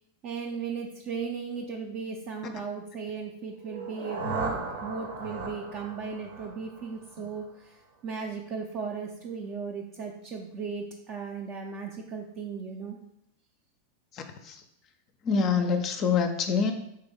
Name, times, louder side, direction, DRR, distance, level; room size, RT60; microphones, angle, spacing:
voice 1, 0.2-7.8 8.0-13.0, right 5 dB, 35° right, 1 dB, 0.4 m, -36 dB
sound 1, 3.6-7.6, right 3 dB, 60° right, 0.8 m, -37 dB
voice 2, 14.2-14.6 15.2-16.7, left 5 dB, 35° left, 6 dB, 0.4 m, -26 dB
4.5 x 3.3 x 3.6 m, 0.79 s
figure-of-eight pair, 90°, 0 cm